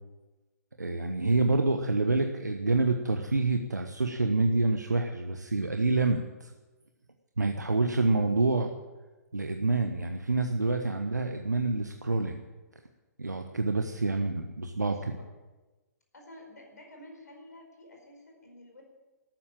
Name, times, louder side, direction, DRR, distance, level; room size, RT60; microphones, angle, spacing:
voice 1, 0.8-6.5 7.4-8.7 9.3-12.4 13.2-15.2, right 3 dB, 85° right, 5 dB, 1.2 m, -27 dB
voice 2, 14.9-15.3 16.1-18.8, left 1 dB, 75° left, 1 dB, 4.7 m, -51 dB
13.5 x 11.5 x 8.9 m, 1.2 s
figure-of-eight pair, 120°, 9 cm